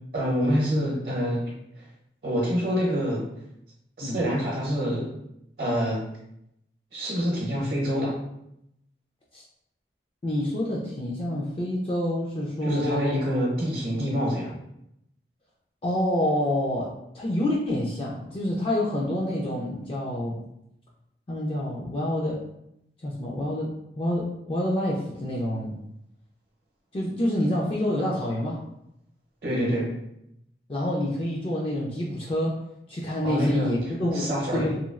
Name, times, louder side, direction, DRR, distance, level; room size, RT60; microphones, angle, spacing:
voice 1, 0.1-1.4 1.8-1.9 2.2-3.2 4.0-5.1 5.6-6.0 6.9-8.2 12.6-14.6 29.4-29.9 33.2-33.7 34.1-34.7, equal, 60° right, -5 dB, 0.8 m, -26 dB
voice 2, 10.2-13.3 15.8-20.4 21.3-22.4 23.0-25.7 26.9-28.6 30.7-32.6 32.9-34.8, left 1 dB, 30° left, -4 dB, 0.3 m, -27 dB
3.0 x 2.3 x 2.3 m, 0.80 s
head